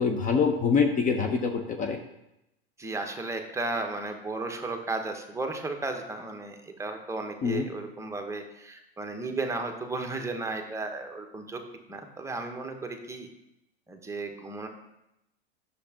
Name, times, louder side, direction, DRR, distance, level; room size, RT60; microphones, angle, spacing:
voice 1, 0.0-2.0 7.4-7.6, left 5 dB, 25° left, 4 dB, 0.7 m, -25 dB
voice 2, 2.8-11.6 11.9-13.3 13.9-14.7, right 3 dB, 10° right, 4 dB, 1.0 m, -34 dB
10.0 x 6.6 x 2.9 m, 0.87 s
hypercardioid pair, 95°, 30 cm